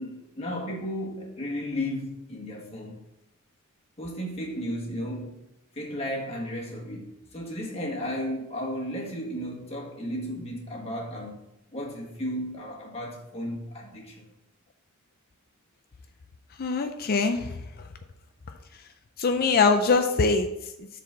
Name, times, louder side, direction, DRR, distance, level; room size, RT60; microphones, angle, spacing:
voice 1, 0.0-3.0 4.0-5.4 5.7-11.4 11.7-14.3, equal, 30° left, -2 dB, 1.6 m, -34 dB
voice 2, 16.6-17.9 19.2-20.9, left 4 dB, 45° left, 7 dB, 0.4 m, -24 dB
7.3 x 4.1 x 5.9 m, 0.89 s
head